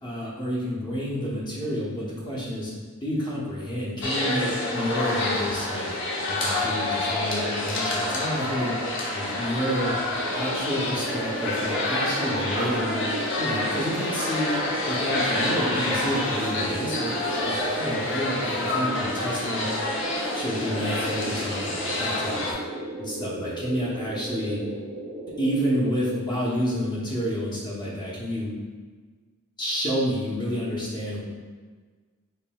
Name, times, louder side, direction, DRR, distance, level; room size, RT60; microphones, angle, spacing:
voice 1, 0.0-2.7 3.0-5.9 6.3-8.8 9.1-9.9 10.3-13.1 13.4-14.6 14.9-17.1 17.4-19.7 20.3-22.6 23.0-24.6 25.4-28.5 29.6-31.2, equal, 20° left, -6 dB, 0.8 m, -29 dB
sound 1, 4.0-22.5, left 1 dB, 60° left, 0.7 m, -28 dB
sound 2, 10.2-26.2, right 2 dB, 30° right, 0.4 m, -35 dB
5.2 x 3.3 x 2.3 m, 1.5 s
head